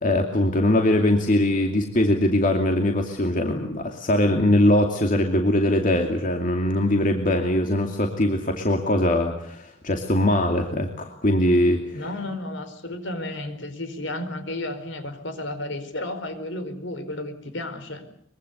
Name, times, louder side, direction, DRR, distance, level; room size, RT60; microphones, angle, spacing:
voice 1, 0.0-12.0, left 1 dB, 40° left, 3 dB, 2.6 m, -21 dB
voice 2, 11.9-18.0, left 1 dB, 65° left, 9 dB, 4.5 m, -32 dB
24.0 x 23.5 x 8.2 m, 0.65 s
head